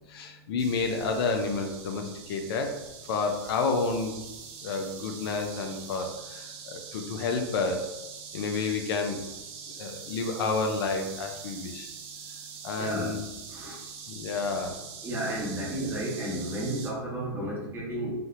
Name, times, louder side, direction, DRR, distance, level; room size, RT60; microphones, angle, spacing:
voice 1, 0.1-2.8 3.1-4.2 4.6-7.9 8.3-9.2 9.8-11.9 12.6-13.3 14.1-14.8, left 4 dB, 60° left, 4 dB, 0.5 m, -30 dB
sound 1, 0.6-16.9, right 6 dB, 40° right, 0.5 m, -44 dB
voice 2, 12.8-13.1 13.5-13.8 15.0-18.1, right 1 dB, 15° right, -5 dB, 1.2 m, -32 dB
3.4 x 2.6 x 2.4 m, 1.0 s
hypercardioid pair, 120°, 14 cm